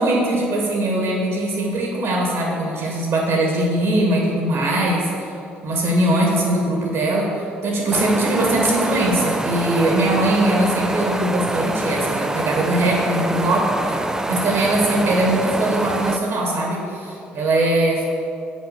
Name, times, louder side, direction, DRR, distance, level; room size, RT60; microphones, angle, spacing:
voice 1, 0.0-5.3 5.6-18.0, right 1 dB, 60° right, -1 dB, 1.4 m, -21 dB
sound 1, 7.9-16.2, right 2 dB, 10° right, 0.4 m, -25 dB
6.6 x 4.4 x 5.9 m, 2.6 s
hypercardioid pair, 55°, 5 cm